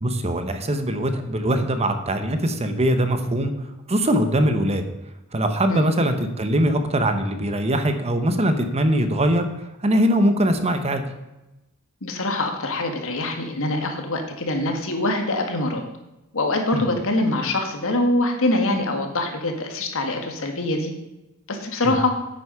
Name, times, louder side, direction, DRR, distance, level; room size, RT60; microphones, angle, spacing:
voice 1, 0.0-3.5 3.9-4.8 5.3-9.5 9.8-11.0 16.7-16.8 21.8-22.0, right 1 dB, 30° right, 8 dB, 1.0 m, -21 dB
voice 2, 12.0-15.8 16.3-20.9 21.5-22.2, left 2 dB, 65° left, 4 dB, 1.9 m, -24 dB
9.6 x 8.3 x 5.7 m, 0.99 s
head